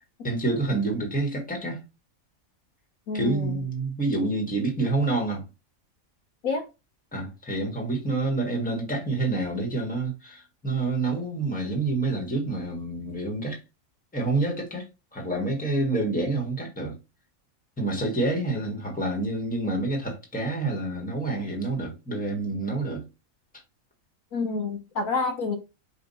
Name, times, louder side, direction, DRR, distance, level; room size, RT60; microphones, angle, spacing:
voice 1, 0.2-1.8 3.1-5.4 7.1-13.6 14.1-17.0 17.8-23.0, right 2 dB, 5° left, 1.4 m, -28 dB
voice 2, 3.1-3.5 6.4-6.6 24.3-25.6, left 4 dB, 80° left, 1.5 m, -28 dB
5.1 x 2.6 x 4.0 m
omnidirectional pair, 1.4 m